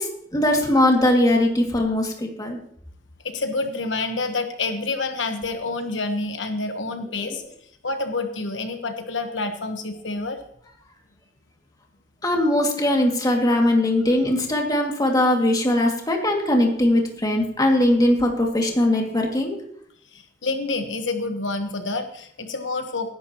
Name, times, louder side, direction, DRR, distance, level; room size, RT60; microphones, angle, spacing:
voice 1, 0.0-2.6 7.3-7.4 12.2-19.6, left 1 dB, 20° left, 1 dB, 2.3 m, -20 dB
voice 2, 3.2-7.4 7.8-10.4 20.1-23.1, left 3 dB, 85° left, 6 dB, 1.3 m, -28 dB
19.0 x 11.0 x 3.0 m, 0.66 s
head